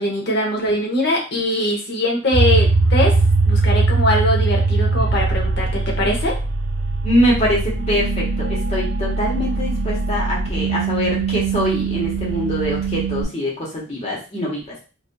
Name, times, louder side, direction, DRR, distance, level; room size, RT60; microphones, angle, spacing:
voice 1, 0.0-3.2 3.4-6.4, left 1 dB, 55° left, 1 dB, 0.8 m, -21 dB
sound 1, 2.3-13.2, right 3 dB, 75° right, 0.6 m, -20 dB
voice 2, 7.0-14.6, equal, 35° left, -5 dB, 1.1 m, -23 dB
2.6 x 2.5 x 2.2 m, 0.34 s
head